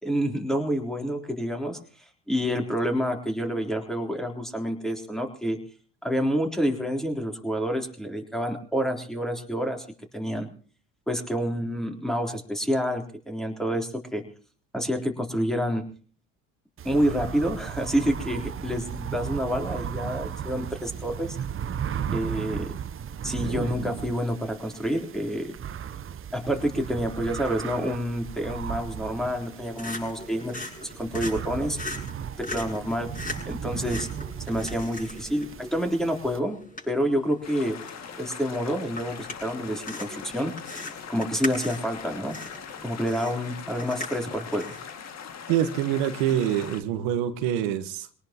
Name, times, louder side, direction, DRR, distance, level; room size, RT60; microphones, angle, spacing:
voice 1, 0.0-1.8 2.3-5.6 6.0-9.9 10.1-10.5 11.1-14.2 14.7-15.8 16.8-21.4 22.1-22.7 23.2-25.6 26.3-30.6 30.8-31.8 32.4-33.1 33.5-34.1 34.5-36.6 36.9-37.8 38.2-40.5 41.1-42.4 42.8-44.7, equal, ahead, 2 dB, 3.6 m, -28 dB
sound 1, 16.8-36.4, right 8 dB, 35° right, 0.9 m, -36 dB
sound 2, 29.4-45.0, left 2 dB, 20° left, 7.3 m, -40 dB
sound 3, 37.4-46.8, left 7 dB, 45° left, 2.1 m, -41 dB
voice 2, 45.5-48.1, right 10 dB, 80° right, 9 dB, 1.4 m, -25 dB
23.0 x 18.5 x 3.0 m, 0.42 s
supercardioid pair, 75°, 36 cm